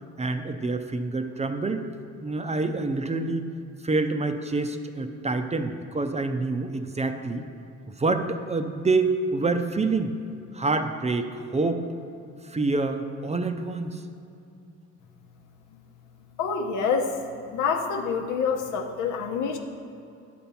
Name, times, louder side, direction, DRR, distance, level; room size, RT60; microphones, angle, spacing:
voice 1, 0.2-1.8 2.2-3.4 3.8-7.4 8.0-10.1 10.5-11.8 12.4-14.0, right 3 dB, 20° right, 7 dB, 0.5 m, -27 dB
voice 2, 16.4-17.2 17.5-19.6, left 5 dB, 85° left, 2 dB, 1.0 m, -26 dB
10.5 x 4.3 x 7.0 m, 2.6 s
cardioid pair, 90°, 30 cm